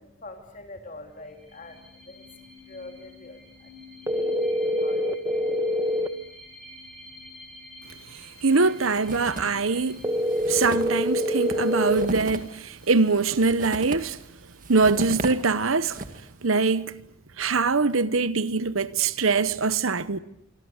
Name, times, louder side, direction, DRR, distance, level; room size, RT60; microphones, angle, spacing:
voice 1, 0.0-3.7 4.0-5.1, left 2 dB, 40° left, 2.8 m, -45 dB
sound 1, 1.2-14.6, left 2 dB, ahead, 8.0 m, -49 dB
sound 2, 4.1-6.1 10.0-12.1, equal, 15° right, 1.4 m, -25 dB
voice 2, 8.1-10.1 10.5-14.2 14.7-16.0 16.4-16.9 17.4-20.2, right 4 dB, 85° right, 1.1 m, -23 dB
sound 3, 8.8-9.7 10.0-10.1 10.3-16.3, right 1 dB, 40° right, 2.2 m, -36 dB
26.5 x 26.0 x 8.1 m
head